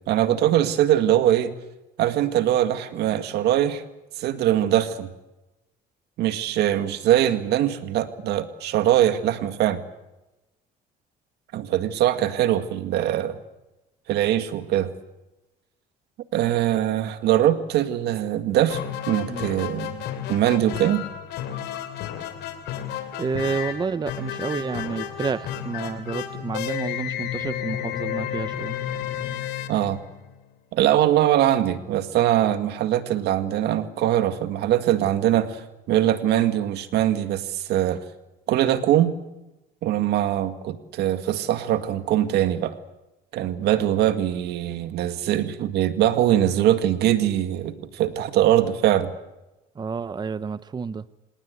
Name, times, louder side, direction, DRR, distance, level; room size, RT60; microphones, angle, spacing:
voice 1, 0.1-1.5 2.0-3.8 4.2-5.1 6.2-9.8 11.5-13.4 14.1-14.9 16.3-18.8 19.1-21.0 29.7-30.0 30.7-35.6 35.9-38.0 38.5-39.2 39.8-42.8 43.3-49.1, right 12 dB, 80° right, 10 dB, 2.1 m, -22 dB
sound 1, 18.7-30.5, left 11 dB, 85° left, 3.1 m, -32 dB
voice 2, 23.2-28.8 49.8-51.0, right 5 dB, 25° right, 14 dB, 0.8 m, -29 dB
27.0 x 19.0 x 8.3 m, 1.0 s
cardioid pair, 110°, 17 cm